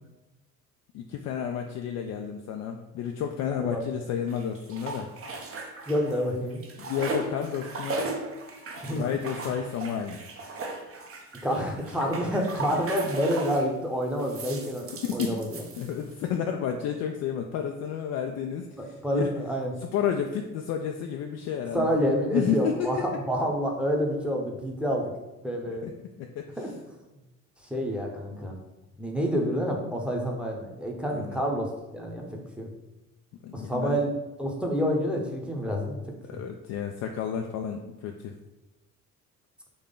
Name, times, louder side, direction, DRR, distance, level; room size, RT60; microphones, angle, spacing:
voice 1, 0.9-5.1 6.8-8.0 8.9-10.3 14.9-15.4 15.8-19.3 19.8-21.9 22.3-23.2 25.8-25.9 26.2-26.5 31.1-31.4 33.4-34.0 36.3-38.3, left 8 dB, 40° left, 3 dB, 0.4 m, -31 dB
sound 1, 4.3-6.2 6.5-13.7 14.2-16.2, right 3 dB, 30° right, 0.7 m, -37 dB
voice 2, 5.9-6.6 8.8-9.0 11.4-14.9 15.1-15.6 18.8-19.8 21.7-25.1 25.4-25.9 26.6-26.7 27.7-28.5 29.0-32.7 33.5-34.1 34.4-36.0, equal, ahead, 0 dB, 0.9 m, -28 dB
3.9 x 3.1 x 3.7 m, 1.0 s
figure-of-eight pair, 55°, 44 cm